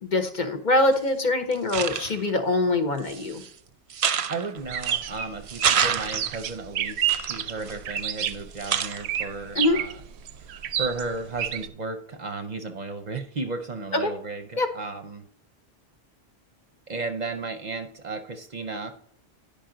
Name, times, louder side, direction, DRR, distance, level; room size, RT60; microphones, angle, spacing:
voice 1, 0.0-3.4 9.5-9.8 13.9-14.1 14.6-14.7, left 2 dB, 50° left, 7 dB, 0.9 m, -23 dB
sound 1, 0.9-1.0 1.5-2.3 3.0-3.5 3.9-5.1 5.5-6.5 7.0-8.3 8.6-9.2, right 7 dB, 65° right, 0.3 m, -28 dB
voice 2, 4.3-10.0 10.4-10.5 10.8-15.2 16.9-18.9, right 3 dB, 45° right, 5 dB, 0.7 m, -34 dB
sound 2, 4.6-11.7, right 10 dB, 80° right, 0.8 m, -30 dB
10.5 x 5.3 x 3.8 m, 0.67 s
omnidirectional pair, 1.1 m